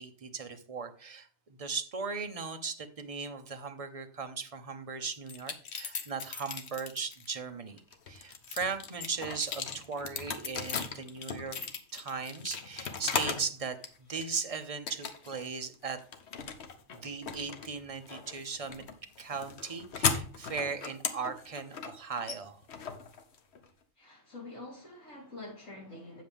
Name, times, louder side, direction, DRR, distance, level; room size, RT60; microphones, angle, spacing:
voice 1, 0.0-7.8 8.1-11.6 11.9-13.8 14.1-16.0 16.9-18.8 19.2-22.6, right 5 dB, 35° right, 7 dB, 0.7 m, -38 dB
sound 1, 5.3-7.3 7.8-13.5 13.8-14.5 14.9-15.5 15.7-23.7, left 6 dB, 60° left, 1.1 m, -37 dB
voice 2, 24.0-26.2, left 2 dB, 90° left, -3 dB, 4.1 m, -46 dB
8.3 x 7.6 x 3.5 m, 0.43 s
omnidirectional pair, 1.3 m